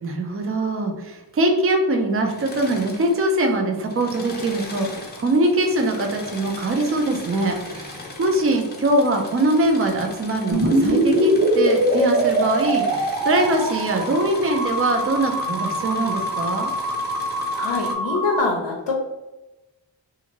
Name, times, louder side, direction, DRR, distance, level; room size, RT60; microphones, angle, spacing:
voice 1, 0.0-16.7, right 2 dB, 35° right, 3 dB, 0.5 m, -22 dB
Engine / Mechanisms, 2.2-3.5 3.8-17.9, left 2 dB, 25° left, 0.6 m, -39 dB
sound 1, 10.5-18.4, right 1 dB, 50° right, 0.8 m, -22 dB
voice 2, 17.5-19.0, left 3 dB, 85° left, -1 dB, 0.6 m, -24 dB
2.6 x 2.5 x 2.9 m, 1.0 s
wide cardioid pair, 70°, 43 cm